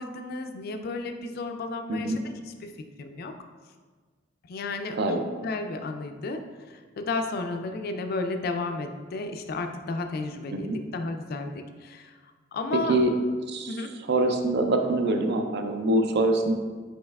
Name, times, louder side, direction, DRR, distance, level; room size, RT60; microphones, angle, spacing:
voice 1, 0.0-2.7 3.0-3.3 4.5-6.4 6.7-12.1 12.5-12.9 13.7-13.9, left 3 dB, 55° left, 6 dB, 0.4 m, -33 dB
voice 2, 12.7-13.1 13.5-13.8 14.1-16.5, right 2 dB, 60° right, 5 dB, 0.4 m, -24 dB
5.4 x 4.0 x 2.3 m, 1.5 s
head